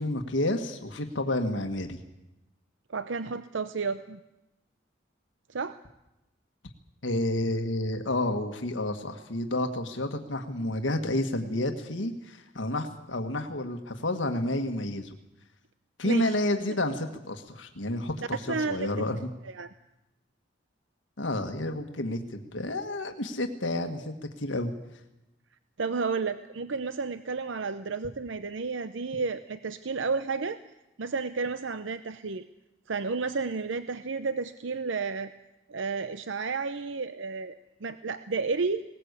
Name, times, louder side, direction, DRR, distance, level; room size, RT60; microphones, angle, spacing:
voice 1, 0.0-2.0 7.0-15.2 16.0-18.4 18.7-19.3 21.2-24.7, left 1 dB, 85° left, 6 dB, 1.7 m, -30 dB
voice 2, 2.9-4.2 5.5-5.8 16.0-16.3 18.5-18.9 19.4-19.7 25.8-30.6 31.0-32.5 32.9-35.3 35.7-38.8, right 4 dB, 85° right, 12 dB, 0.7 m, -32 dB
20.0 x 19.0 x 8.2 m, 0.95 s
head